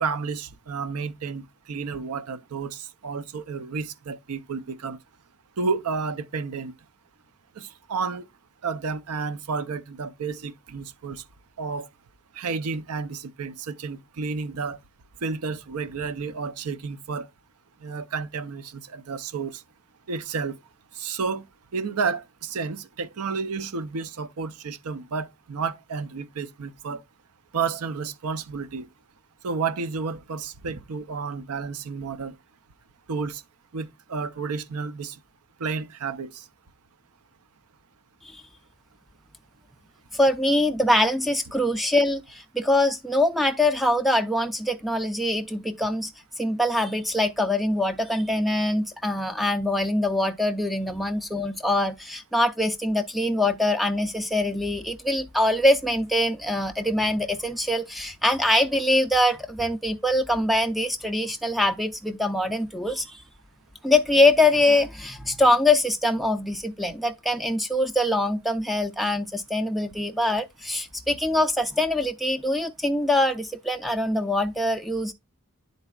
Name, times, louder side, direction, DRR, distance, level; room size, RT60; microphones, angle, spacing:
voice 1, 0.0-5.0 5.6-6.7 7.6-8.2 8.6-11.2 11.6-11.9 12.3-14.8 15.2-17.3 17.8-19.6 20.1-20.6 21.0-21.4 21.7-27.0 27.5-28.9 29.4-32.3 33.1-33.4 33.7-35.2 35.6-36.4, right 5 dB, 85° right, 0.6 m, -31 dB
voice 2, 40.1-46.1 46.4-63.2 63.8-75.1, left 1 dB, ahead, 0.3 m, -23 dB
10.5 x 4.0 x 2.3 m
head